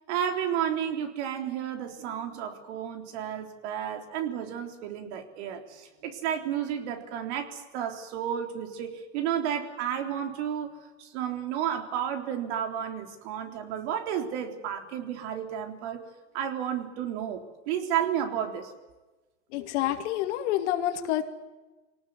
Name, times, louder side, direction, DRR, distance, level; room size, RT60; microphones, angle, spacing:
voice 1, 0.1-16.0 16.3-18.7, right 9 dB, 60° right, 5 dB, 3.8 m, -32 dB
voice 2, 19.5-21.2, left 12 dB, 65° left, 6 dB, 2.6 m, -28 dB
24.5 x 18.5 x 9.5 m, 1.1 s
hypercardioid pair, 125°, 38 cm